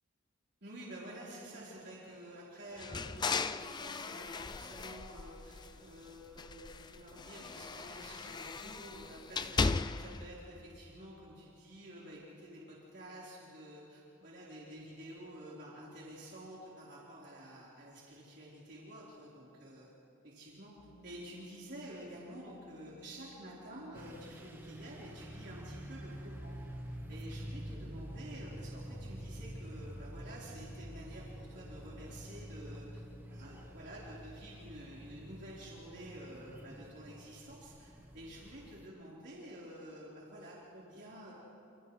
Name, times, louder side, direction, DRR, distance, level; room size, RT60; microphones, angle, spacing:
voice 1, 0.6-19.9 20.2-20.7 21.0-26.6 27.1-33.0 33.3-41.3, right 1 dB, 60° right, -7 dB, 4.0 m, -50 dB
sound 1, 2.8-6.0 6.3-10.3, left 4 dB, 20° left, 0.4 m, -37 dB
sound 2, 20.8-33.7, equal, 65° left, 4.0 m, -58 dB
sound 3, 23.9-38.9, equal, 10° right, 0.9 m, -47 dB
29.5 x 28.0 x 3.2 m, 2.7 s
head